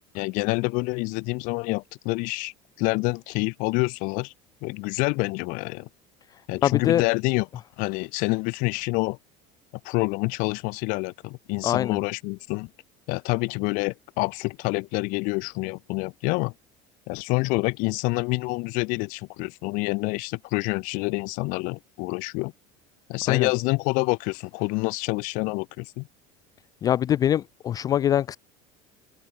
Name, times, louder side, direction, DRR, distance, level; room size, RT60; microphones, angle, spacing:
voice 1, 0.1-4.3 4.6-5.9 6.5-7.5 7.8-9.2 9.8-12.7 13.1-16.5 17.1-22.5 23.1-26.1, left 28 dB, 55° left, 2.5 m, -27 dB
voice 2, 6.6-7.0 11.6-12.0 23.3-23.5 26.8-28.4, left 11 dB, 25° left, 0.4 m, -23 dB
cardioid pair, 175°, 16 cm